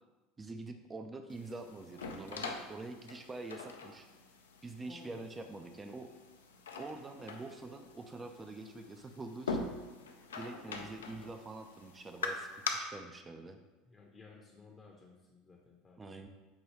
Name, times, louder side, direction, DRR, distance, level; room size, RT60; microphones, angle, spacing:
voice 1, 0.4-4.1 4.6-6.1 6.8-9.7 10.4-13.6 16.0-16.3, right 2 dB, 20° right, 6 dB, 0.3 m, -45 dB
sound 1, 1.3-12.7, left 4 dB, 85° left, 0.4 m, -44 dB
voice 2, 4.9-5.4 13.8-16.2, left 4 dB, 20° left, -1 dB, 0.6 m, -56 dB
5.4 x 2.3 x 3.2 m, 1.2 s
hypercardioid pair, 75°, 0 cm